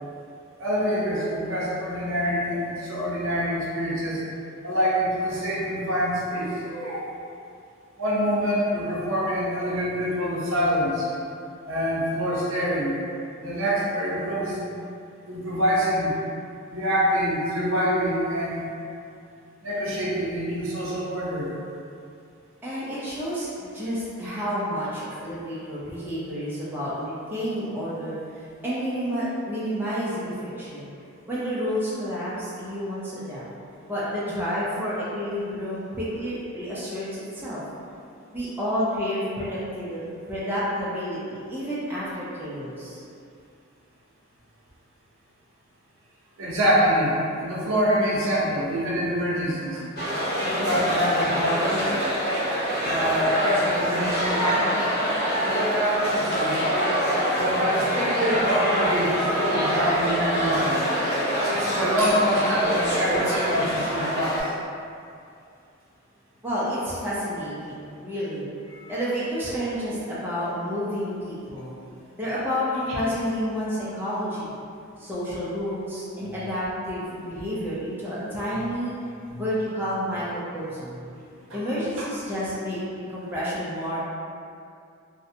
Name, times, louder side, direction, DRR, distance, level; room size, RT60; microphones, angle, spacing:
voice 1, 0.6-4.2 4.6-7.1 8.0-11.1 11.6-13.0 13.4-14.6 15.3-16.2 16.7-18.7 19.6-21.5 46.4-49.8 50.4-52.0 52.3-54.7 55.4-56.9 57.4-60.8 61.4-64.5 68.7-68.9 79.3-79.4 81.3-81.6, equal, 75° right, -6 dB, 0.6 m, -26 dB
voice 2, 22.6-28.2 28.6-30.9 31.3-33.5 33.8-37.6 38.3-43.0 66.4-68.5 68.9-71.8 72.2-74.6 75.0-79.0 79.4-81.0 81.5-84.0, equal, 10° right, -10 dB, 0.4 m, -30 dB
sound 1, 50.0-64.4, equal, 50° left, 0.5 m, -25 dB
2.5 x 2.1 x 2.6 m, 2.5 s
head